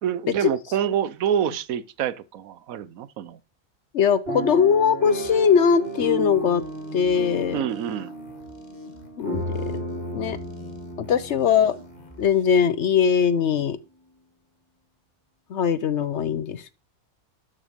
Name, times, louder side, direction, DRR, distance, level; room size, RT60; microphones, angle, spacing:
voice 1, 0.0-3.4 7.5-8.1, right 9 dB, 75° right, 1.1 m, -27 dB
voice 2, 3.9-6.7 6.9-7.6 9.2-9.8 10.1-10.4 11.0-11.8 12.2-13.8 15.5-16.8, left 7 dB, 60° left, 0.9 m, -21 dB
sound 1, 4.3-12.4 13.0-13.1 13.3-13.6, right 1 dB, 40° right, 3.4 m, -33 dB
sound 2, 5.2-12.5, equal, 30° left, 2.0 m, -50 dB
13.0 x 6.0 x 5.1 m
omnidirectional pair, 1.5 m